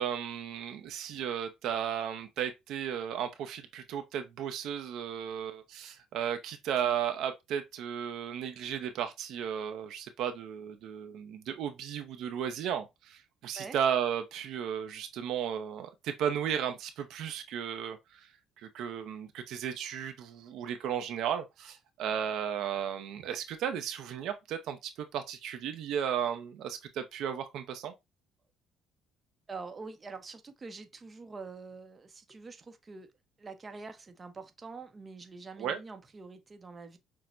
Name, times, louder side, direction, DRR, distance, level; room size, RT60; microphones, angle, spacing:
voice 1, 0.0-18.0 18.6-24.8 25.1-27.9 35.6-35.8, right 9 dB, 70° right, 0.5 m, -34 dB
voice 2, 29.5-33.1 33.4-37.0, right 4 dB, 30° right, 0.6 m, -45 dB
5.9 x 2.1 x 2.4 m
supercardioid pair, 85°, 0 cm